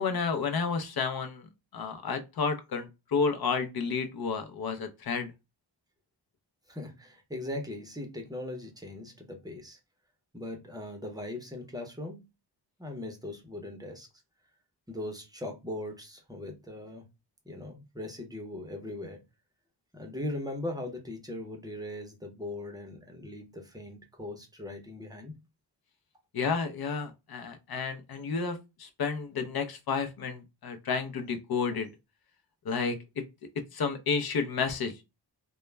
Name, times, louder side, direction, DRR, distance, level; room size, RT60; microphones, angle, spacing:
voice 1, 0.0-1.5 1.7-5.3 26.3-31.9 32.6-33.2 33.7-34.9, left 5 dB, 55° left, 0.6 m, -31 dB
voice 2, 6.7-9.8 10.3-12.2 12.8-14.1 14.9-17.0 17.5-19.2 19.9-25.3, left 1 dB, 10° right, 0.6 m, -39 dB
2.2 x 2.0 x 3.2 m
wide cardioid pair, 125°, 44 cm